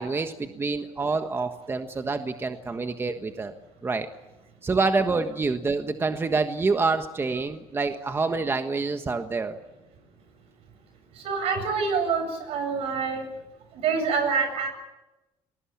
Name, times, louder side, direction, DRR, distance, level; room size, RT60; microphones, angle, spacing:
voice 1, 0.0-3.5 3.8-4.1 4.6-9.6, right 4 dB, 25° right, 7 dB, 1.4 m, -27 dB
voice 2, 11.2-13.2 13.7-14.7, right 5 dB, 75° right, 7 dB, 7.7 m, -26 dB
28.0 x 20.0 x 7.4 m, 1.0 s
cardioid pair, 115°, 10 cm